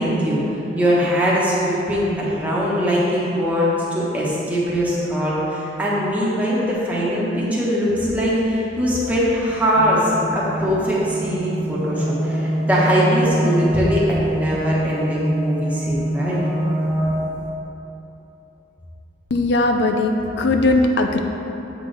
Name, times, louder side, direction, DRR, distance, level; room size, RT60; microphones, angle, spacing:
voice 1, 0.0-16.4, equal, 10° right, -7 dB, 1.2 m, -21 dB
sound 1, 9.7-17.5, right 1 dB, 25° left, 0.8 m, -24 dB
voice 2, 19.3-21.2, left 2 dB, 75° left, 4 dB, 0.4 m, -19 dB
7.7 x 6.0 x 3.4 m, 3.0 s
head